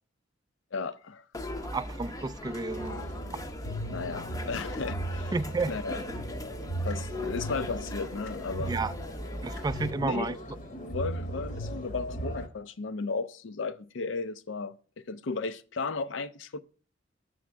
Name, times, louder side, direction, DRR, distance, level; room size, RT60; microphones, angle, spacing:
voice 1, 0.7-1.2 3.9-5.4 5.7-6.0 6.8-8.7 10.0-10.3 10.8-16.6, left 4 dB, 70° left, 0.5 m, -35 dB
sound 1, 1.3-9.9, left 1 dB, 20° left, 0.6 m, -40 dB
voice 2, 1.7-3.0 3.3-3.4 5.3-5.8 8.6-8.9 9.4-10.3, right 3 dB, 20° right, 0.3 m, -31 dB
sound 2, 2.7-12.5, right 1 dB, 45° left, 1.0 m, -37 dB
sound 3, 5.6-5.7 6.9-7.0 8.2-8.4 9.5-9.7 10.9-11.0, left 2 dB, 90° left, 1.4 m, -49 dB
7.3 x 6.2 x 3.4 m
head